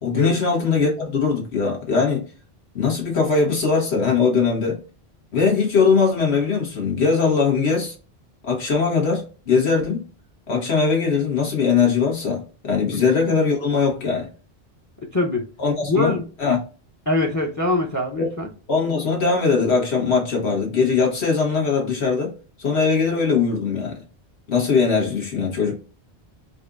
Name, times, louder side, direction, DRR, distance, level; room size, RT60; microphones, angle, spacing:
voice 1, 0.0-2.3 2.7-4.8 5.3-7.9 8.5-10.0 10.5-14.3 15.6-16.6 18.2-18.3 18.7-22.3 22.6-24.0 24.5-25.8, left 5 dB, 90° left, 1.6 m, -20 dB
voice 2, 15.1-15.4 15.8-16.2 17.1-18.5, left 2 dB, 25° left, 0.4 m, -23 dB
4.2 x 2.5 x 2.5 m
omnidirectional pair, 1.1 m